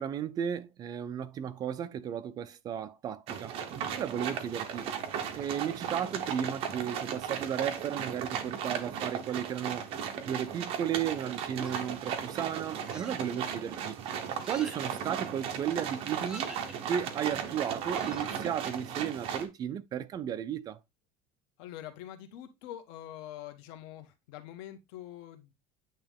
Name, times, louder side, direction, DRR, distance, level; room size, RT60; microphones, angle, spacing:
voice 1, 0.0-3.6 4.0-4.9 5.4-9.9 10.3-14.0 14.5-16.5 16.8-20.8, right 9 dB, 30° right, 0.5 m, -34 dB
sound 1, 3.3-19.5, right 8 dB, 50° right, 1.0 m, -36 dB
sound 2, 11.6-12.1 12.9-13.3 14.4-14.9 16.2-16.7 17.9-18.7, right 1 dB, 5° right, 1.1 m, -46 dB
voice 2, 21.6-25.5, left 12 dB, 75° left, 1.3 m, -45 dB
8.9 x 3.1 x 3.5 m
cardioid pair, 155°, 13 cm